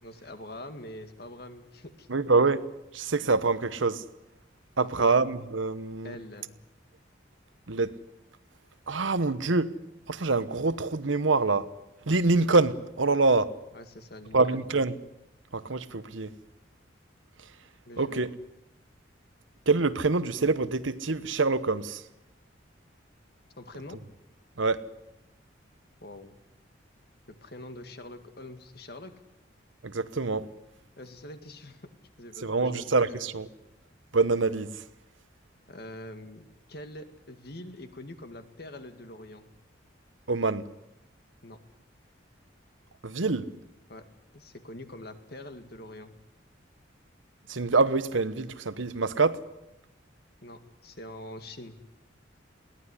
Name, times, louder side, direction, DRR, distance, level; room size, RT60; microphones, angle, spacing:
voice 1, 0.0-2.5 4.8-5.1 6.0-6.5 13.7-14.4 17.9-18.2 23.6-24.0 26.0-26.4 27.3-29.2 31.0-31.9 32.2-33.3 35.7-39.5 41.4-41.6 43.9-44.0 44.3-46.1 50.4-51.8, left 1 dB, 55° left, 2.1 m, -44 dB
voice 2, 2.1-2.7 2.9-4.0 4.8-6.2 7.7-8.0 8.9-9.7 10.1-11.7 12.1-13.6 14.3-14.9 15.5-16.4 18.0-18.3 19.7-22.0 24.6-24.8 29.8-30.5 32.4-33.5 34.1-34.8 40.3-40.7 43.0-43.5 47.5-49.4, right 3 dB, 85° right, 1.1 m, -25 dB
22.0 x 17.5 x 9.9 m
head